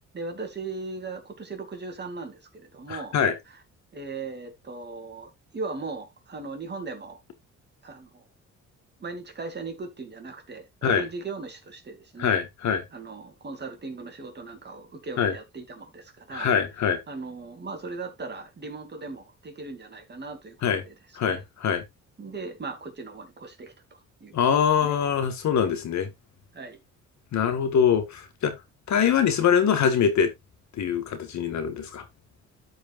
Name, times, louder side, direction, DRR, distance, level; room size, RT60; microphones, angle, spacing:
voice 1, 0.1-3.2 3.9-7.2 7.8-8.2 9.0-12.4 12.9-16.5 17.1-20.9 21.2-21.4 22.2-24.3 24.8-25.0 26.5-26.8, right 3 dB, 35° right, 2.7 m, -38 dB
voice 2, 2.9-3.4 10.8-11.1 12.2-12.8 15.2-15.3 16.3-17.0 20.6-20.8 21.2-21.8 24.3-26.1 27.3-28.5 28.9-30.3 30.7-32.0, left 7 dB, 65° left, 1.7 m, -23 dB
13.5 x 5.1 x 2.5 m
cardioid pair, 90°, 30 cm